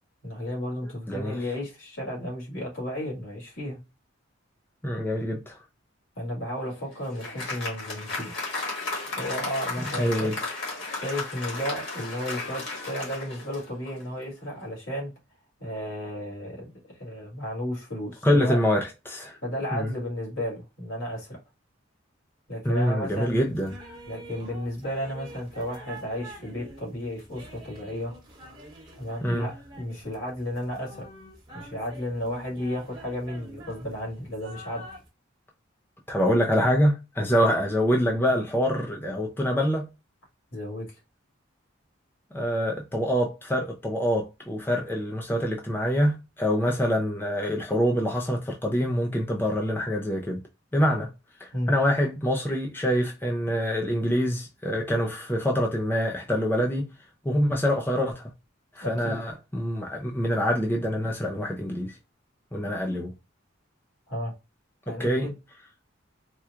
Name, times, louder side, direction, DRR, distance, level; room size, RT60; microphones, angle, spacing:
voice 1, 0.2-3.8 6.2-8.3 9.2-10.3 10.9-15.1 15.6-16.7 17.0-18.6 19.4-21.4 22.5-23.4 24.1-28.1 28.9-31.0 31.5-34.8 40.5-40.9 51.5-51.8 58.8-59.2 64.1-64.3 64.9-65.3, equal, 75° left, 2.0 m, -33 dB
voice 2, 4.8-5.6 9.8-10.3 18.2-19.4 19.7-19.9 22.6-23.7 29.2-29.5 36.1-39.9 42.3-50.4 50.7-51.1 51.4-56.8 57.2-58.3 58.8-62.0 62.5-63.1 65.0-65.3, equal, 10° left, 0.5 m, -25 dB
Applause, 6.6-14.1, left 3 dB, 60° left, 1.5 m, -34 dB
sound 1, 23.1-35.1, right 1 dB, 20° right, 1.2 m, -46 dB
4.3 x 2.3 x 2.4 m
head